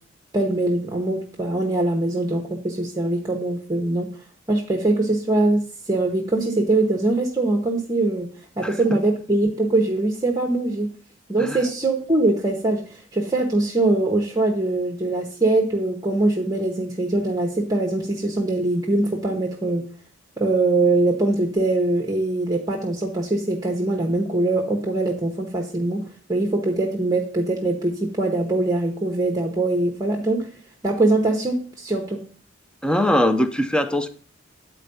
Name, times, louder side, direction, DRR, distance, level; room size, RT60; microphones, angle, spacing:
voice 1, 0.3-4.1 4.5-8.3 8.6-10.9 11.3-19.9 20.4-26.0 26.3-30.5 30.8-32.2, right 2 dB, 20° right, 1 dB, 0.9 m, -22 dB
voice 2, 8.6-9.0 11.4-11.6 32.8-34.1, left 1 dB, 5° left, 9 dB, 0.5 m, -21 dB
9.0 x 4.5 x 6.8 m, 0.44 s
head